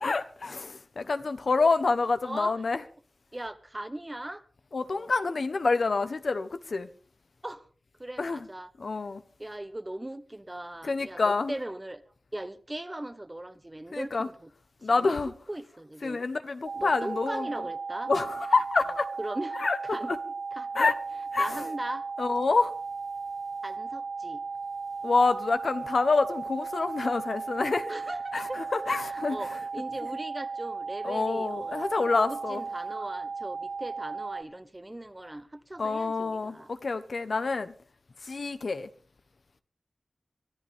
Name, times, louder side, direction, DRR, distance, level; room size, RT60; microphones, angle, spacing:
voice 1, 0.0-2.8 4.7-6.9 8.2-8.4 8.8-9.2 10.8-11.5 13.9-14.3 14.8-15.3 16.0-17.5 18.1-19.1 19.6-19.8 20.1-20.2 20.7-20.9 21.3-21.6 22.2-22.7 25.0-27.9 28.3-29.4 31.0-32.6 35.8-37.7 38.3-38.9, left 3 dB, 70° left, 1.1 m, -27 dB
voice 2, 2.2-2.6 3.3-4.4 4.9-5.1 7.4-7.6 8.0-8.7 9.4-12.0 12.3-14.5 14.9-15.1 15.5-16.2 16.7-18.1 19.2-20.1 20.5-20.7 21.4-22.0 23.6-24.4 27.9-28.6 29.0-36.7, right 1 dB, 20° right, 1.1 m, -39 dB
sound 1, 16.7-34.4, right 4 dB, 90° right, 1.9 m, -36 dB
24.0 x 14.5 x 3.6 m
wide cardioid pair, 70°, 0 cm